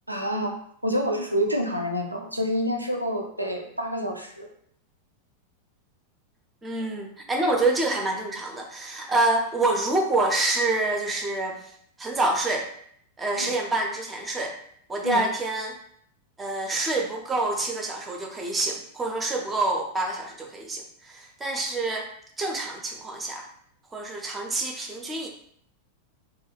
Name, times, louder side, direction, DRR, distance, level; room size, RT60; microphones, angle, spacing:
voice 1, 0.1-0.5 0.8-4.5 13.4-13.5 15.0-15.2, equal, 85° right, 2 dB, 0.4 m, -27 dB
voice 2, 6.6-11.6 12.0-12.7 13.2-14.5 14.9-15.8 16.4-22.1 22.4-23.4 23.9-25.3, right 2 dB, 15° right, 2 dB, 0.5 m, -27 dB
2.2 x 2.1 x 3.3 m, 0.66 s
figure-of-eight pair, 90°, 0 cm